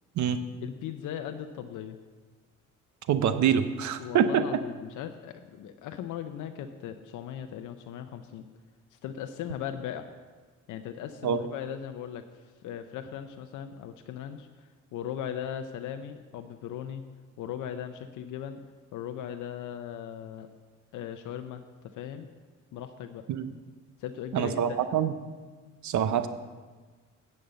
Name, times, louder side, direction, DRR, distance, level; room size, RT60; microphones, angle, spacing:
voice 1, 0.6-2.0 4.0-8.4 8.9-10.1 10.7-12.2 12.6-14.5 14.9-17.0 17.4-18.6 18.9-20.5 20.9-21.6 21.9-22.3 22.7-23.2 24.0-25.0, left 9 dB, 85° left, 7 dB, 0.6 m, -38 dB
voice 2, 3.1-4.4 11.2-11.4 23.3-23.5 24.3-25.1 25.8-26.3, right 8 dB, 70° right, 11 dB, 0.7 m, -25 dB
10.5 x 5.5 x 7.7 m, 1.4 s
cardioid pair, 90°, 30 cm